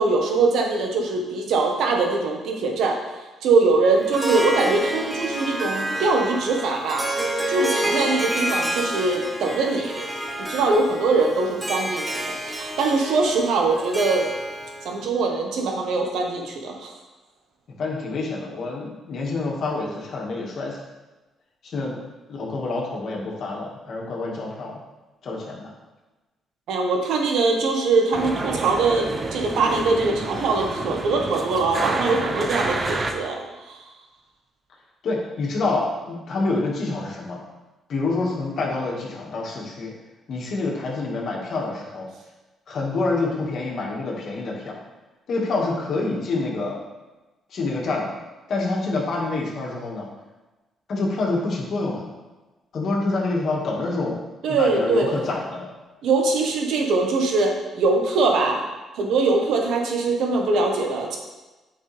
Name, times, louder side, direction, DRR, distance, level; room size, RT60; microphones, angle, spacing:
voice 1, 0.0-3.0 3.4-7.2 7.5-10.1 10.4-14.3 14.8-16.9 26.7-33.8 54.4-55.2 56.0-58.6 58.9-61.2, right 3 dB, 80° right, 2 dB, 1.3 m, -22 dB
Harp, 4.0-14.9, right 1 dB, 15° right, 1.3 m, -28 dB
voice 2, 17.8-20.8 21.6-22.0 22.3-24.7 25.2-25.7 35.0-37.4 37.9-39.9 40.3-42.1 42.7-44.8 45.3-46.8 47.5-48.1 48.5-50.1 50.9-52.1 52.7-54.2 54.5-55.7, left 3 dB, 60° left, -2 dB, 2.0 m, -27 dB
sound 1, 28.1-33.1, right 3 dB, 30° right, 0.8 m, -29 dB
8.7 x 5.5 x 3.5 m, 1.1 s
cardioid pair, 90°, 0 cm